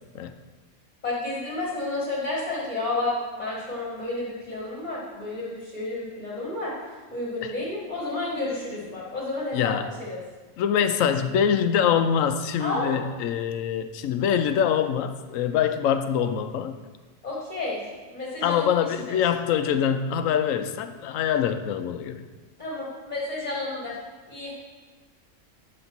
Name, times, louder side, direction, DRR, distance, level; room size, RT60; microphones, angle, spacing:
voice 1, 1.0-6.7 7.1-9.7 10.0-10.2 12.6-13.0 17.2-17.8 18.1-18.7 19.1-19.2 22.6-24.0 24.3-24.5, left 2 dB, 30° left, -6 dB, 1.5 m, -31 dB
voice 2, 9.5-9.9 10.6-16.7 18.4-22.2, left 8 dB, 80° left, 9 dB, 1.0 m, -24 dB
8.6 x 4.0 x 5.9 m, 1.3 s
omnidirectional pair, 1.4 m